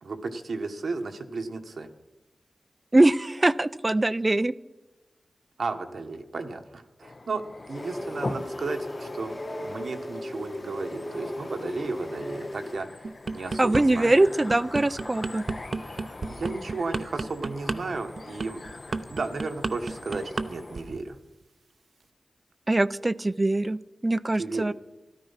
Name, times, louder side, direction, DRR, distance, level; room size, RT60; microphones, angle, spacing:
voice 1, 0.0-1.9 5.6-9.3 9.6-13.0 13.3-14.1 15.8-18.6 19.1-21.2 24.4-24.7, right 3 dB, 80° right, 6 dB, 1.2 m, -34 dB
voice 2, 2.9-4.5 13.6-15.4 22.7-24.7, right 2 dB, 25° right, 17 dB, 0.4 m, -22 dB
sound 1, 7.0-21.0, left 2 dB, 45° left, 0.7 m, -42 dB
sound 2, 7.7-12.8, left 1 dB, 30° left, 1.3 m, -37 dB
sound 3, 13.0-13.8 14.3-20.5 20.7-21.0, right 3 dB, 60° right, 0.7 m, -31 dB
13.0 x 13.0 x 5.7 m, 1.1 s
wide cardioid pair, 80°, 0 cm